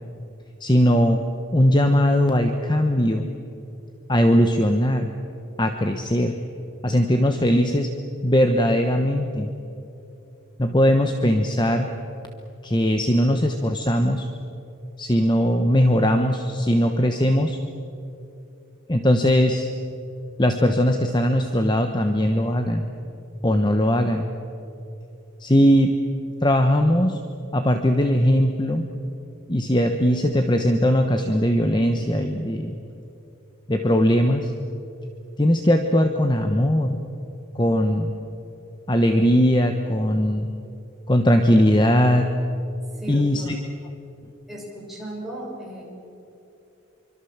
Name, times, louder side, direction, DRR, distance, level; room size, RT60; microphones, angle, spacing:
voice 1, 0.6-1.2 1.5-3.3 4.1-5.1 5.6-6.4 6.8-7.9 8.2-9.5 10.6-11.9 12.6-14.3 15.0-17.6 18.9-19.7 20.4-22.9 23.4-24.3 25.4-25.9 26.4-27.2 27.5-28.9 29.5-32.8 33.7-34.5 35.4-37.0 37.5-38.1 38.9-40.5 41.1-42.3 43.1-43.6, equal, 20° left, 6 dB, 1.1 m, -19 dB
voice 2, 42.9-43.5 44.5-45.8, right 1 dB, ahead, -4 dB, 6.5 m, -36 dB
26.0 x 24.5 x 7.4 m, 2.8 s
head